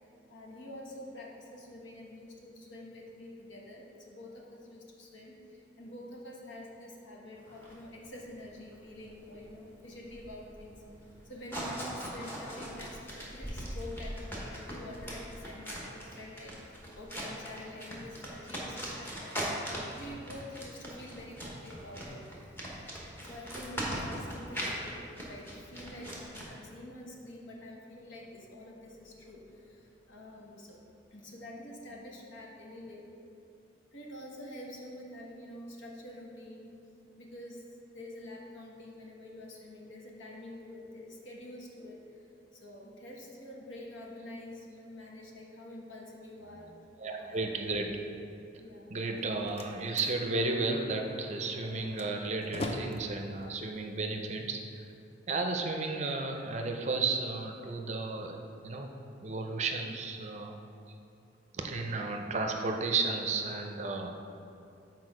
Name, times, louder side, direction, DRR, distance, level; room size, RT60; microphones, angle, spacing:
voice 1, 0.3-10.8 11.2-19.4 19.9-22.2 23.2-30.8 31.1-33.1 33.9-36.8 37.2-37.7 37.9-42.1 42.5-46.9 47.2-47.6 48.6-48.9, left 1 dB, 80° left, -2 dB, 1.1 m, -47 dB
sound 1, 7.4-26.4, equal, 10° left, 1.0 m, -40 dB
voice 2, 47.0-47.9 48.9-54.9 55.3-58.4 58.6-58.9 59.2-60.5 61.5-64.2, right 3 dB, 35° right, 3 dB, 0.5 m, -33 dB
Slam, 49.0-55.0, left 1 dB, 30° left, 0.4 m, -43 dB
6.4 x 4.2 x 4.9 m, 2.6 s
head